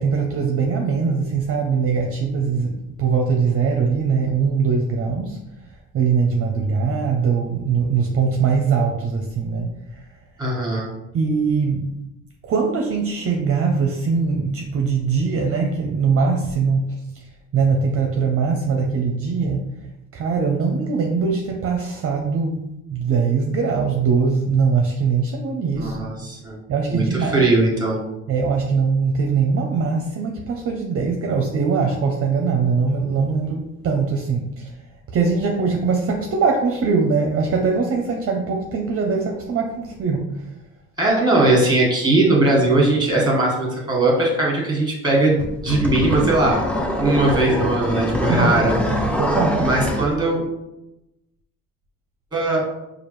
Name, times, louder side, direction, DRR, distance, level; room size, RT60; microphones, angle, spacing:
voice 1, 0.0-5.4 5.9-9.7 11.1-11.8 12.4-16.8 17.5-19.6 20.1-22.6 22.9-26.1 26.7-27.5 28.3-34.7 35.1-40.3 48.3-49.8, right 5 dB, 45° right, 2 dB, 0.5 m, -21 dB
voice 2, 10.4-10.9 25.8-26.6 26.9-28.0 41.0-46.6 47.0-49.1 49.6-50.4 52.3-52.6, right 2 dB, 15° right, -2 dB, 1.4 m, -19 dB
sound 1, 45.4-50.1, left 1 dB, 5° left, 0.4 m, -23 dB
4.9 x 2.4 x 3.1 m, 0.90 s
cardioid pair, 110°, 32 cm